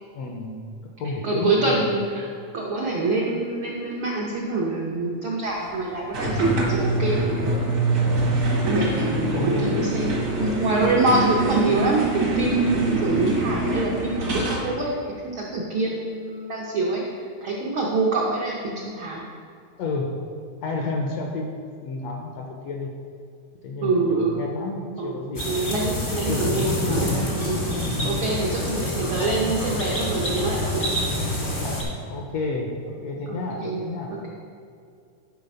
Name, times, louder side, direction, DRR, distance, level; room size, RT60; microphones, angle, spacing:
voice 1, 0.1-0.6 1.0-1.9 9.3-9.9 10.3-10.7 11.7-11.8 19.8-20.2 20.6-22.9 23.6-25.4 26.1-27.3 28.9-29.3 32.1-34.1, left 3 dB, 75° left, 1 dB, 1.6 m, -31 dB
voice 2, 1.2-2.2 2.5-7.8 8.6-15.0 15.3-17.0 17.4-19.2 23.8-24.4 25.0-25.1 25.4-30.9 33.3-33.8 34.1-34.3, right 2 dB, 85° right, -3 dB, 1.1 m, -25 dB
sound 1, 6.1-14.7, right 2 dB, 65° right, 0.9 m, -24 dB
sound 2, 25.3-31.8, left 1 dB, 50° left, 0.6 m, -27 dB
10.5 x 4.1 x 5.3 m, 2.4 s
omnidirectional pair, 3.6 m